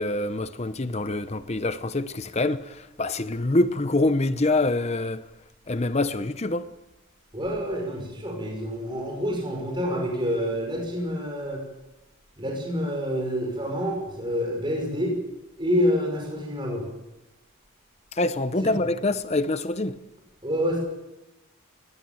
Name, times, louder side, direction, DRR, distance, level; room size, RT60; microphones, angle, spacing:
voice 1, 0.0-5.3 5.7-6.7 18.1-20.0, left 2 dB, 30° left, 0.7 m, -25 dB
voice 2, 7.3-11.6 12.4-15.2 15.6-16.9 18.6-18.7 20.4-20.8, equal, 20° right, 5.6 m, -27 dB
20.0 x 16.5 x 9.0 m
head